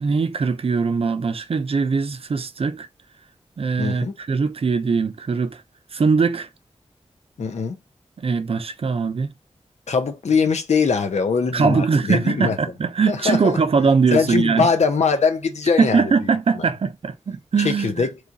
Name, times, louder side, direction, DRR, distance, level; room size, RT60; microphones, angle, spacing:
voice 1, 0.0-2.9 3.6-5.6 5.9-6.5 8.2-9.3 11.5-14.7 15.8-18.1, right 5 dB, 60° right, 0.5 m, -21 dB
voice 2, 3.8-4.1 7.4-7.8 9.9-12.6 13.1-13.6 14.1-16.1 16.6-16.7 17.6-18.1, left 5 dB, 85° left, 0.7 m, -21 dB
3.1 x 2.4 x 3.9 m
wide cardioid pair, 65°, 11 cm